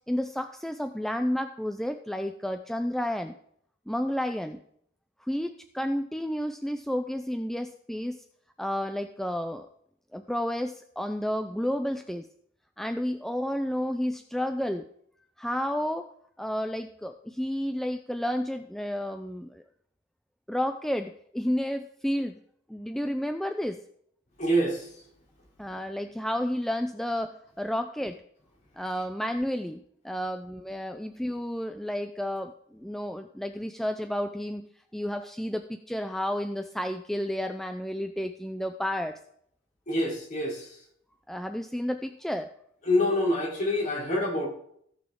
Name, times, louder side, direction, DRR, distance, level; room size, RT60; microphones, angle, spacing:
voice 1, 0.1-3.3 3.9-4.6 5.2-8.2 8.6-9.7 10.1-12.3 12.8-14.9 15.4-16.1 16.4-19.6 20.5-22.4 22.7-23.8 25.6-28.2 28.8-34.7 34.9-39.2 41.3-42.5, equal, ahead, 7 dB, 0.4 m, -31 dB
voice 2, 24.4-24.9 39.9-40.7 42.9-44.5, left 1 dB, 40° left, -2 dB, 3.2 m, -26 dB
17.0 x 6.1 x 3.7 m, 0.67 s
head